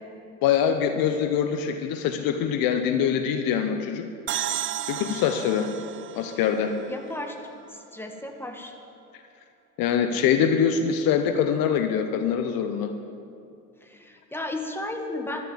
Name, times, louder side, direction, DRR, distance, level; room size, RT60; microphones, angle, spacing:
voice 1, 0.4-4.1 4.9-5.7 6.1-6.7 9.8-12.9, left 8 dB, 55° left, 7 dB, 1.0 m, -24 dB
sound 1, 4.3-7.8, right 12 dB, 30° right, 0.4 m, -34 dB
voice 2, 6.9-7.4 7.7-8.7 13.8-15.4, left 2 dB, 5° left, 3 dB, 1.7 m, -34 dB
12.0 x 7.6 x 9.5 m, 2.4 s
hypercardioid pair, 65°, 41 cm